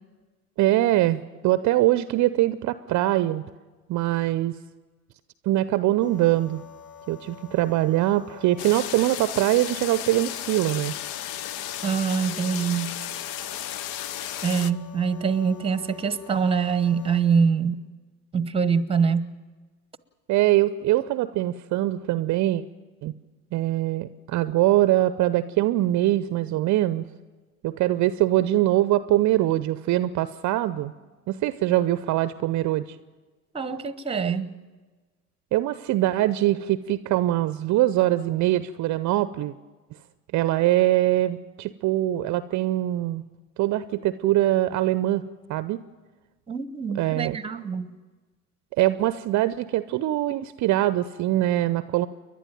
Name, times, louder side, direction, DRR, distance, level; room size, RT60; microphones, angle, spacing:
voice 1, 0.6-3.4 3.9-4.5 5.4-6.6 7.1-10.9 20.3-22.6 23.0-23.1 23.5-27.1 27.6-30.9 31.3-33.0 35.5-39.5 40.3-43.2 43.6-45.8 46.9-47.4 48.8-52.1, right 15 dB, 40° right, 0.7 m, -23 dB
sound 1, 6.0-17.2, left 7 dB, 35° left, 7.5 m, -46 dB
sound 2, 8.6-14.7, left 11 dB, 55° left, 0.8 m, -34 dB
voice 2, 11.8-12.9 14.4-17.9 18.3-19.3 33.5-34.5 46.5-47.9, right 6 dB, 10° right, 1.0 m, -24 dB
29.5 x 11.5 x 9.1 m
hypercardioid pair, 75°, 44 cm